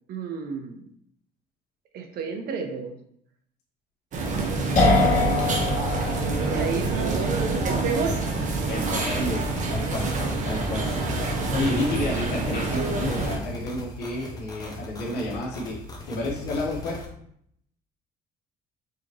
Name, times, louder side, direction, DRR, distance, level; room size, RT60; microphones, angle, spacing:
voice 1, 0.1-0.9 1.9-2.9 4.3-4.6 4.8-5.1 6.1-7.4 7.6-8.2 11.9-12.0, right 5 dB, 65° right, 5 dB, 0.7 m, -32 dB
sound 1, 4.1-13.4, right 3 dB, 45° right, 0.9 m, -27 dB
sound 2, 4.7-12.3, left 2 dB, 45° left, 1.7 m, -27 dB
voice 2, 8.7-10.1 10.4-10.9 11.5-15.8 16.1-17.0, left 1 dB, 75° left, -4 dB, 1.1 m, -30 dB
sound 3, 9.6-17.1, left 2 dB, 20° left, 0.7 m, -40 dB
4.8 x 2.9 x 2.9 m, 0.69 s
cardioid pair, 110°, 17 cm